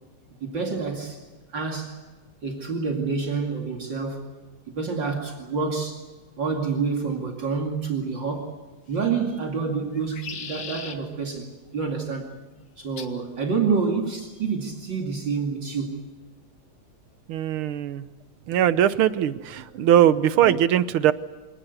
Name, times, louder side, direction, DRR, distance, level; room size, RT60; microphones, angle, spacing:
voice 1, 0.4-1.2 1.5-1.9 2.4-4.3 4.8-6.0 6.4-8.5 8.9-12.3 12.8-16.0, right 5 dB, 60° right, 1 dB, 3.1 m, -28 dB
sound 1, 8.9-9.4 9.9-11.0 13.0-13.2 14.2-14.6, left 6 dB, 70° left, 2.4 m, -39 dB
voice 2, 17.3-18.0 18.5-21.1, right 10 dB, 90° right, 14 dB, 1.8 m, -20 dB
26.5 x 19.0 x 8.2 m, 1.3 s
omnidirectional pair, 2.3 m